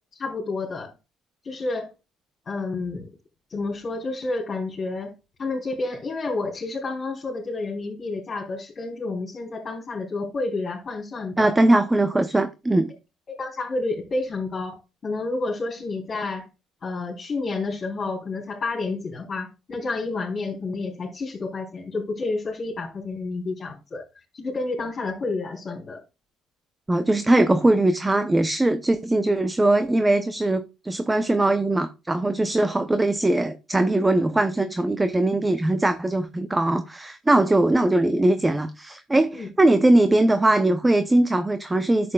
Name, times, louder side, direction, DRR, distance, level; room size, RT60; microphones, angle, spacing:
voice 1, 0.1-0.9 1.4-1.9 2.5-3.0 3.5-5.1 5.4-11.5 13.4-16.5 16.8-24.0 24.3-26.0 39.3-39.5, left 3 dB, 35° left, 3.7 m, -30 dB
voice 2, 11.4-12.9 26.9-42.1, right 2 dB, 15° right, 0.7 m, -21 dB
10.5 x 7.7 x 2.3 m
cardioid pair, 100°, 0 cm